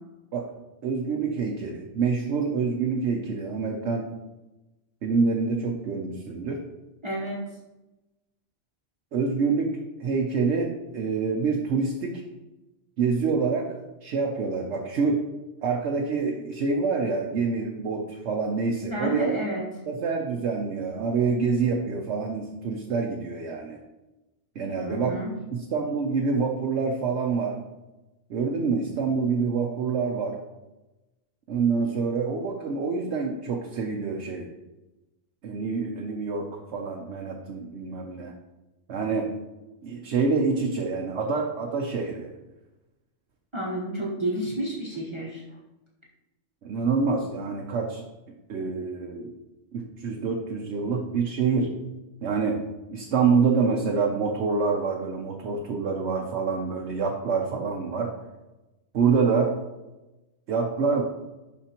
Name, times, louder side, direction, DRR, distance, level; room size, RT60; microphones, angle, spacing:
voice 1, 0.8-4.1 5.0-6.7 9.1-12.2 13.0-15.3 15.6-19.3 19.9-23.8 24.6-25.1 25.5-27.6 28.3-30.4 31.5-34.5 35.4-38.3 38.9-39.4 39.8-42.3 46.6-48.0 48.5-49.3 49.7-51.7 52.2-52.6 52.9-58.1 58.9-59.6 60.5-61.0, right 5 dB, 70° right, 1 dB, 1.0 m, -26 dB
voice 2, 7.0-7.4 18.9-19.6 24.7-25.4 43.5-45.4, right 1 dB, 25° right, -4 dB, 1.1 m, -30 dB
11.5 x 4.2 x 2.9 m, 1.0 s
omnidirectional pair, 1.2 m